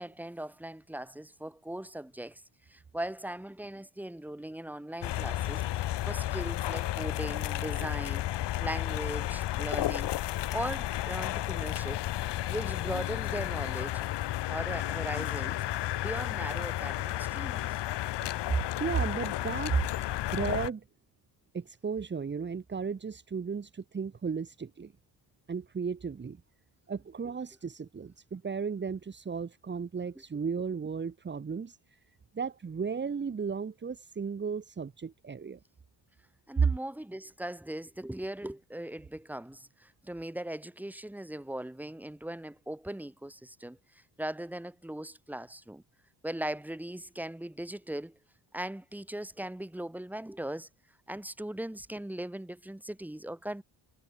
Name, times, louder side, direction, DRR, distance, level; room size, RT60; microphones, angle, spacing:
voice 1, 0.0-10.2 10.5-12.0 12.5-14.1 14.4-15.6 16.0-17.8 36.5-45.8 46.2-48.2 48.5-50.7 51.1-53.6, right 1 dB, 5° right, 6.0 m, -39 dB
sound 1, 5.0-20.7, left 14 dB, 70° left, 1.8 m, -32 dB
voice 2, 18.5-19.8 20.3-20.8 21.5-24.9 25.5-26.4 26.9-32.0 32.3-35.6 36.6-36.7, right 5 dB, 25° right, 3.2 m, -34 dB
cardioid pair, 175°, 43 cm